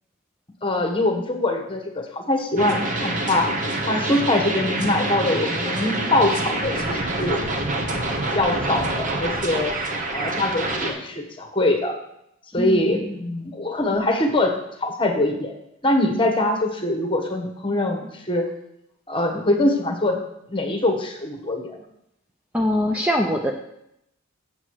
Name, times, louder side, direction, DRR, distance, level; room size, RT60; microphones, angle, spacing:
voice 1, 0.6-3.5 3.8-7.4 8.3-9.7 10.1-11.9 12.5-14.5 14.8-15.5 15.8-18.5 19.1-20.2 20.5-21.8, left 1 dB, 25° left, 4 dB, 1.2 m, -23 dB
sound 1, 2.6-10.9, right 2 dB, 35° right, 1.1 m, -26 dB
voice 2, 12.6-13.1 22.5-23.5, left 1 dB, 5° right, 1 dB, 0.5 m, -23 dB
8.0 x 7.5 x 4.7 m, 0.79 s
head